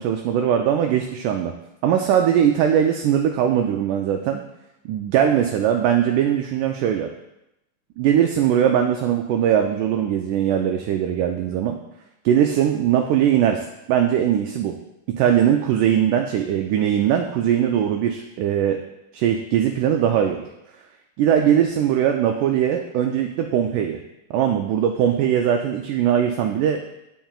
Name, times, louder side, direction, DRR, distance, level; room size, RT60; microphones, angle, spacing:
voice 1, 0.0-1.5 1.8-4.4 4.9-7.1 8.0-11.8 12.3-14.8 15.2-18.8 19.1-20.4 21.2-24.0 24.3-26.8, right 9 dB, 80° right, 3 dB, 1.8 m, -20 dB
10.0 x 5.5 x 2.4 m, 0.89 s
omnidirectional pair, 4.0 m